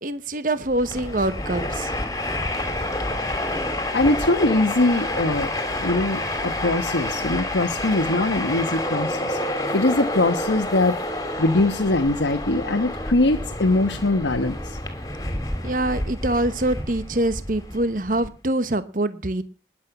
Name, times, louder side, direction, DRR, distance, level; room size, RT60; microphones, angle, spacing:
voice 1, 0.0-1.9 15.6-19.4, right 1 dB, 45° right, 13 dB, 1.0 m, -24 dB
Train, 0.7-18.3, left 1 dB, 20° left, 2.8 m, -29 dB
voice 2, 3.9-5.5 5.8-9.4 9.7-11.0 11.4-14.8, left 2 dB, 85° left, 5 dB, 1.2 m, -22 dB
20.5 x 8.6 x 6.0 m, 0.36 s
head